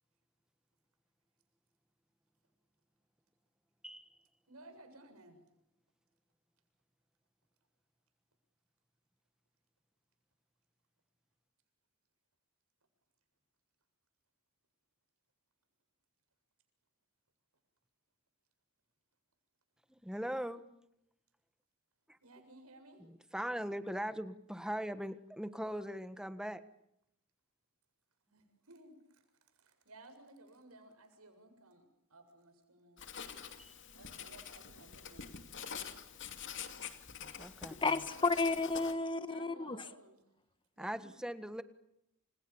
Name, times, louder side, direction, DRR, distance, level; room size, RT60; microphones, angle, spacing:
voice 1, 3.8-4.2 19.9-20.7 22.1-22.2 23.0-26.6 33.6-33.7 37.2-37.9 40.8-41.6, equal, 5° right, 10 dB, 1.5 m, -40 dB
voice 2, 4.5-5.4 22.2-23.0 28.3-29.2 29.5-33.0 33.9-35.3 36.7-36.8 39.3-40.2 40.8-41.2, right 2 dB, 90° right, 6 dB, 7.4 m, -58 dB
Writing, 33.0-38.9, left 7 dB, 60° left, 2.7 m, -46 dB
voice 3, 37.8-39.8, left 3 dB, 25° left, 11 dB, 1.5 m, -32 dB
30.0 x 28.0 x 7.2 m, 0.79 s
head